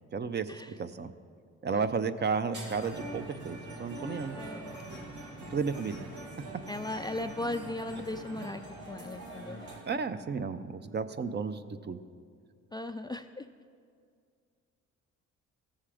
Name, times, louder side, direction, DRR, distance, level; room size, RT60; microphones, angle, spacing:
voice 1, 0.1-0.5 0.8-1.1 1.6-4.4 5.5-6.1 9.9-12.0, right 5 dB, 35° right, 11 dB, 0.6 m, -33 dB
sound 1, 2.5-9.8, right 1 dB, 80° right, 2.5 m, -43 dB
voice 2, 4.3-4.8 6.7-8.6 8.9-9.6 12.7-13.5, left 2 dB, 15° left, 7 dB, 0.3 m, -37 dB
16.0 x 7.3 x 4.9 m, 2.1 s
cardioid pair, 90°, 30 cm